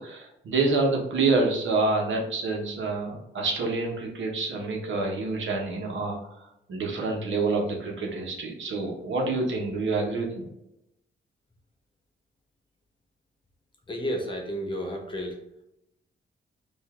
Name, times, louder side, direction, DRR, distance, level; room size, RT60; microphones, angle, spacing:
voice 1, 0.0-6.2 6.7-10.5, right 3 dB, 75° right, 0 dB, 1.2 m, -27 dB
voice 2, 13.9-15.4, equal, 25° left, 1 dB, 0.9 m, -31 dB
5.3 x 2.6 x 3.7 m, 0.86 s
wide cardioid pair, 155°, 20 cm